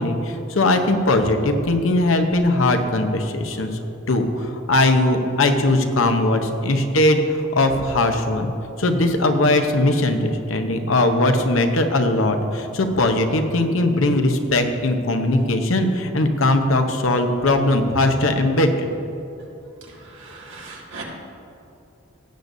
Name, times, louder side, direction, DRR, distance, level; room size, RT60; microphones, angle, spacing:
voice 1, 0.0-3.7 4.1-8.5 8.8-18.9, left 2 dB, 90° left, 6 dB, 0.9 m, -19 dB
voice 2, 20.3-21.0, right 4 dB, 80° right, -3 dB, 2.1 m, -37 dB
16.5 x 8.3 x 2.7 m, 2.8 s
head